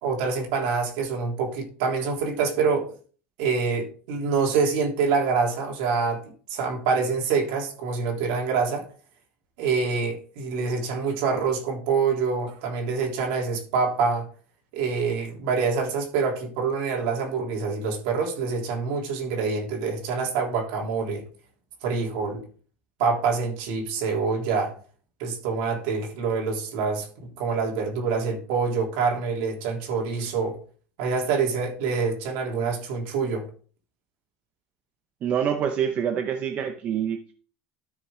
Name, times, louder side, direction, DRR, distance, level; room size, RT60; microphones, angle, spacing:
voice 1, 0.0-2.9 3.4-8.9 9.6-14.3 14.7-21.2 21.8-22.4 23.0-24.7 25.2-30.6 31.0-33.5, right 5 dB, 65° right, 3.4 m, -26 dB
voice 2, 35.2-37.3, right 8 dB, 30° right, 0.7 m, -26 dB
13.0 x 6.2 x 3.8 m
cardioid pair, 170°, 5 cm